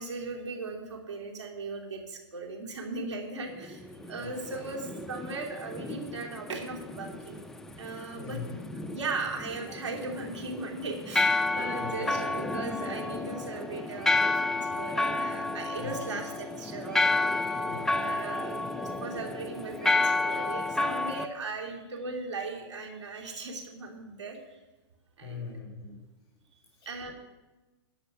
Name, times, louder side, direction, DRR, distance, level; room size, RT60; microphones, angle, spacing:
voice 1, 0.0-7.4 7.8-8.4 8.9-17.3 18.0-24.6 25.2-25.5 26.8-27.1, right 3 dB, 85° right, 1 dB, 3.0 m, -38 dB
sound 1, 3.6-21.3, left 2 dB, 5° left, 0.5 m, -31 dB
voice 2, 8.1-8.6 11.8-12.3 15.8-16.2 17.6-18.2 25.2-26.0 26.8-27.1, left 4 dB, 20° left, -3 dB, 4.0 m, -42 dB
13.5 x 5.3 x 9.2 m, 1.1 s
hypercardioid pair, 130°, 14 cm